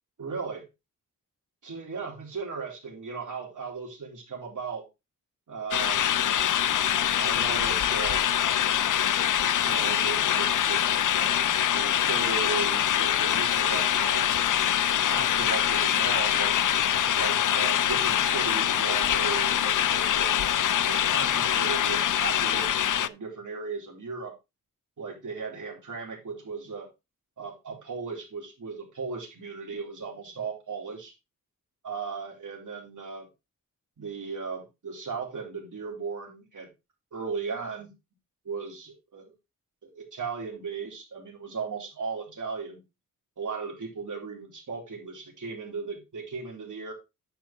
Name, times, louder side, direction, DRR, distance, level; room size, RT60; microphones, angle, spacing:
voice 1, 0.2-0.7 1.6-4.9 5.5-6.1 7.2-8.3 9.6-10.8 11.1-14.3 15.0-16.6 17.1-20.3 20.8-24.3 25.0-26.9 27.4-31.1 31.8-33.3 34.0-36.7 37.1-37.9 38.5-39.3 39.8-42.8 43.4-46.9, right 5 dB, 65° right, 0 dB, 3.9 m, -36 dB
sound 1, 5.7-23.1, left 10 dB, 70° left, 0.6 m, -24 dB
10.5 x 4.9 x 4.3 m, 0.25 s
wide cardioid pair, 100°, 33 cm